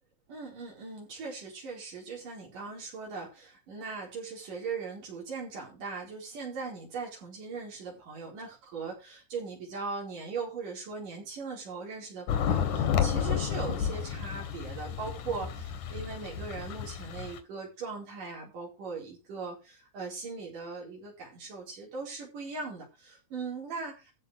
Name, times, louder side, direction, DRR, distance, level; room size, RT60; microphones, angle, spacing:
voice 1, 0.3-24.1, right 4 dB, 90° right, -3 dB, 6.2 m, -39 dB
sound 1, 12.3-17.4, left 8 dB, 75° left, 3.1 m, -31 dB
14.0 x 5.4 x 6.7 m, 0.29 s
omnidirectional pair, 3.6 m